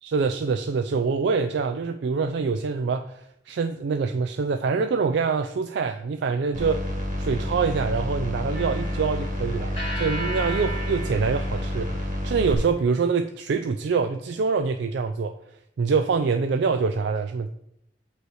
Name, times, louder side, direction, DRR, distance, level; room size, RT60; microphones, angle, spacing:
voice 1, 0.0-6.9 7.2-15.3 15.8-17.5, right 5 dB, 70° right, 7 dB, 0.4 m, -25 dB
sound 1, 6.5-12.5, left 1 dB, 45° right, 1.6 m, -29 dB
sound 2, 8.5-12.8, right 1 dB, 30° left, 2.0 m, -37 dB
8.0 x 3.2 x 6.2 m, 0.79 s
head